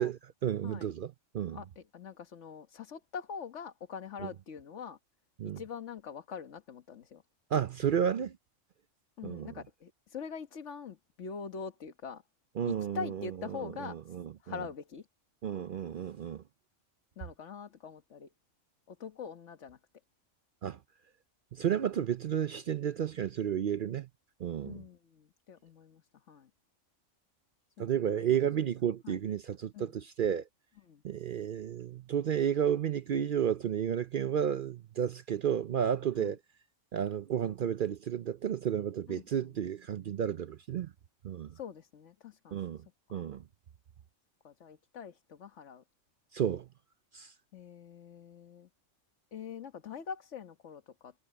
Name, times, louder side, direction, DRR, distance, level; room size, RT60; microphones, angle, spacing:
voice 1, 0.0-1.6 4.2-4.3 5.4-5.6 7.5-8.4 9.2-9.5 12.6-14.6 15.4-16.4 20.6-20.8 21.5-24.1 24.4-24.8 27.8-30.5 31.0-36.4 36.9-40.9 41.2-41.5 42.5-42.8 43.1-43.4 46.3-46.7 47.1-47.3, right 9 dB, 60° right, 0.6 m, -32 dB
voice 2, 1.5-5.0 5.5-7.2 9.2-12.2 12.6-14.2 14.4-15.0 17.2-18.3 18.9-19.8 24.6-26.0 26.3-26.5 27.8-28.4 29.0-29.2 29.7-29.9 30.9-31.0 36.2-36.3 39.1-39.5 41.5-42.6 43.1-43.2 44.4-45.8 47.5-48.7 49.3-51.1, left 6 dB, 65° left, 1.5 m, -44 dB
omnidirectional pair, 1.3 m